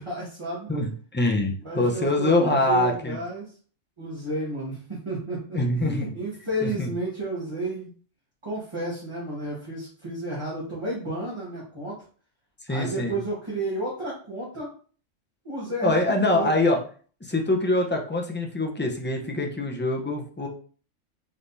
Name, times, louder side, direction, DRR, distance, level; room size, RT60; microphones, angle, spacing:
voice 1, 0.0-0.7 1.6-3.5 4.0-7.9 8.4-11.9 12.7-14.7 15.4-16.7, right 1 dB, 25° right, -7 dB, 1.4 m, -32 dB
voice 2, 0.7-3.2 5.5-6.1 6.6-6.9 12.7-13.2 15.8-16.8 17.2-20.5, left 2 dB, 15° left, 2 dB, 0.4 m, -24 dB
4.6 x 3.6 x 2.6 m, 0.42 s
omnidirectional pair, 1.3 m